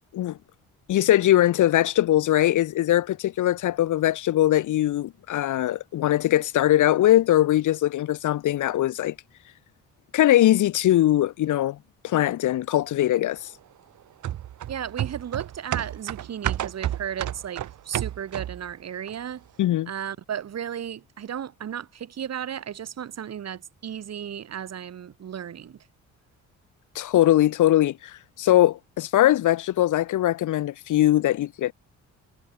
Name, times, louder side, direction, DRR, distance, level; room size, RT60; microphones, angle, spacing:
voice 1, 0.9-9.1 10.1-11.8 12.0-13.5 19.6-19.9 26.9-31.7, left 13 dB, 80° left, 4.6 m, -21 dB
sound 1, 14.2-18.7 19.1-19.2, right 12 dB, 75° right, 5.0 m, -31 dB
voice 2, 14.7-19.4 19.9-25.8, right 9 dB, 60° right, 4.7 m, -34 dB
cardioid pair, 90°, 30 cm